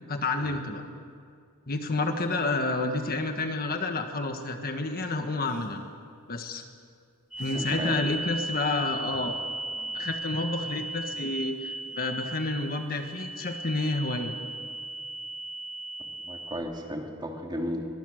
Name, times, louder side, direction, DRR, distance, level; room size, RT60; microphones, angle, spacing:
voice 1, 0.1-0.8 1.7-5.9 6.3-6.6 7.4-9.3 9.9-14.3, left 2 dB, 45° left, 5 dB, 1.5 m, -29 dB
sound 1, 5.4-5.9 7.4-7.9 9.3-9.4 9.8-10.0, left 1 dB, 85° left, 3.0 m, -46 dB
sound 2, 7.3-16.6, right 2 dB, 5° right, 4.5 m, -36 dB
voice 2, 7.5-7.9 16.2-17.9, equal, 20° right, 1 dB, 2.5 m, -34 dB
22.0 x 21.5 x 6.5 m, 2.2 s
head